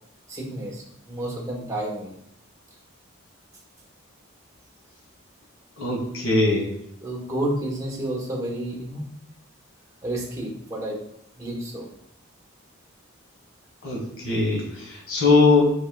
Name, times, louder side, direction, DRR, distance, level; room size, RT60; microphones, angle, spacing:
voice 1, 0.3-2.1 7.0-9.1 10.0-11.0 11.3-11.9, right 1 dB, 15° right, -3 dB, 1.0 m, -30 dB
voice 2, 5.8-6.7 13.8-14.6 15.1-15.7, left 3 dB, 75° left, -1 dB, 1.5 m, -20 dB
5.4 x 4.3 x 2.3 m, 0.79 s
head